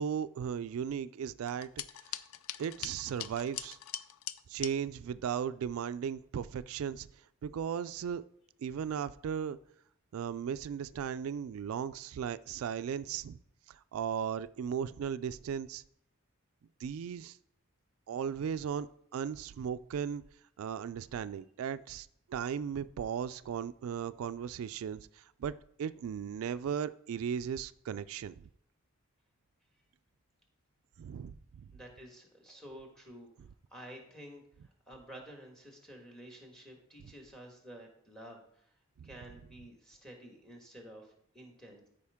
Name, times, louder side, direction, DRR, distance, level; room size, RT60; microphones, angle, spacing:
voice 1, 0.0-1.7 2.6-3.8 4.5-7.1 7.4-8.2 8.6-9.6 10.1-13.4 13.7-15.8 16.8-17.4 18.1-20.2 20.6-28.4 31.0-31.7 39.0-39.1, right 7 dB, 80° right, 0.3 m, -36 dB
sound 1, 1.5-4.7, left 12 dB, 85° left, 0.4 m, -42 dB
voice 2, 31.7-33.3 33.7-38.7 39.0-41.9, right 1 dB, 5° left, 1.5 m, -51 dB
13.0 x 5.1 x 3.5 m
head